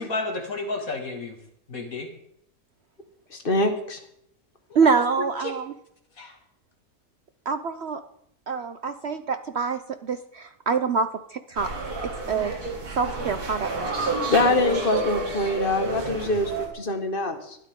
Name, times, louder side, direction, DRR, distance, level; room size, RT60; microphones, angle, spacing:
voice 1, 0.0-1.4 1.7-2.1 4.8-4.9 5.4-5.5 6.2-6.3, left 3 dB, 65° left, 3 dB, 2.5 m, -31 dB
voice 2, 3.3-4.0 14.3-17.6, left 2 dB, 35° left, 6 dB, 1.7 m, -24 dB
voice 3, 4.7-5.7 7.5-8.0 8.5-11.7 12.3-12.5 13.0-13.7, right 5 dB, 55° right, 10 dB, 0.8 m, -25 dB
sound 1, 11.5-16.7, right 3 dB, 90° right, 2.7 m, -30 dB
19.5 x 12.5 x 3.7 m, 0.74 s
omnidirectional pair, 1.6 m